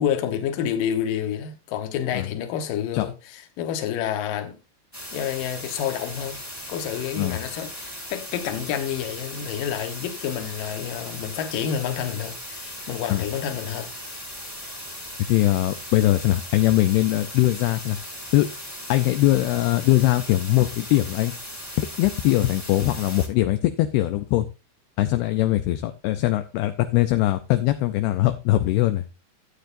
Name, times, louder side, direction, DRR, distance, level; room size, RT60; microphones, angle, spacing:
voice 1, 0.0-4.6 5.1-6.4 6.7-13.9, left 9 dB, 65° left, 2.4 m, -29 dB
sound 1, 4.9-23.3, left 1 dB, 5° left, 1.2 m, -38 dB
voice 2, 15.3-18.0 18.3-18.5 18.9-21.3 22.0-24.5 25.0-29.0, left 16 dB, 80° left, 2.3 m, -21 dB
13.5 x 9.2 x 2.6 m
omnidirectional pair, 5.2 m